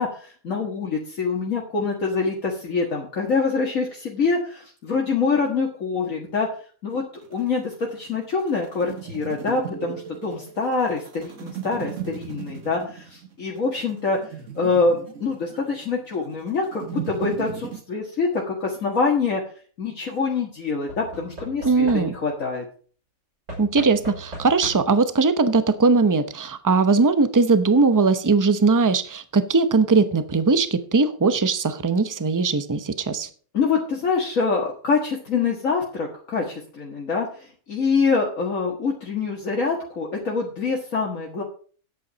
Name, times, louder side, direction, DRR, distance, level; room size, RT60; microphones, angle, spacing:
voice 1, 0.0-6.5 6.8-7.0 7.3-14.2 14.6-19.4 19.8-22.7 33.5-41.4, left 4 dB, 65° left, -2 dB, 2.1 m, -25 dB
sound 1, 7.1-17.8, right 8 dB, 60° right, 1.6 m, -37 dB
Knock / Wood, 18.7-19.2 20.9-22.4 23.5-25.1 26.1-26.2 26.4-26.5, right 1 dB, 85° right, 5.2 m, -39 dB
voice 2, 21.6-22.1 23.6-33.3, right 4 dB, 20° right, 11 dB, 0.6 m, -20 dB
10.0 x 8.5 x 5.2 m, 0.43 s
omnidirectional pair, 1.5 m